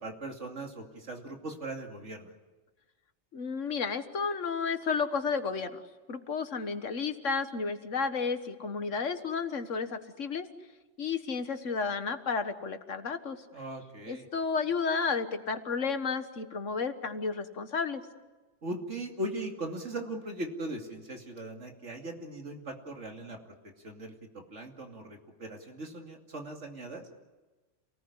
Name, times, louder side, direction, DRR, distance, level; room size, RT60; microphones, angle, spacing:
voice 1, 0.0-2.3 13.5-14.3 18.6-23.5 23.8-27.1, right 1 dB, 75° right, 3 dB, 2.9 m, -39 dB
voice 2, 3.3-5.8 6.1-10.5 11.0-13.4 14.1-18.1, left 5 dB, 85° left, 9 dB, 1.8 m, -32 dB
27.5 x 19.0 x 9.8 m, 1.2 s
omnidirectional pair, 1.3 m